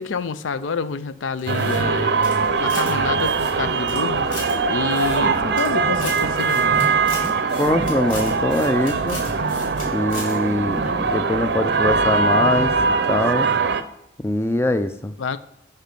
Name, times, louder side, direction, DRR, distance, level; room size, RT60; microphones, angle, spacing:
voice 1, 0.0-2.2 2.6-4.3 4.7-6.9 13.3-13.6 15.2-15.4, left 5 dB, 80° left, 14 dB, 0.5 m, -28 dB
sound 1, 1.4-2.9 3.2-4.5 4.9-5.7 6.0-9.8 10.1-10.3, left 2 dB, 45° left, 3.3 m, -37 dB
sound 2, 1.5-13.8, right 4 dB, 60° right, 0.6 m, -21 dB
sound 3, 5.2-5.9 6.2-6.3 6.7-6.9 7.2-7.4 7.7-8.4 8.8-8.9 9.2-9.5 9.7-10.4 10.7-12.4 12.7-12.9, right 1 dB, 10° right, 1.1 m, -35 dB
voice 2, 7.6-9.3 9.9-12.7 13.1-13.5 14.2-15.1, left 1 dB, 15° left, 11 dB, 0.4 m, -22 dB
9.1 x 5.5 x 5.3 m, 0.81 s
head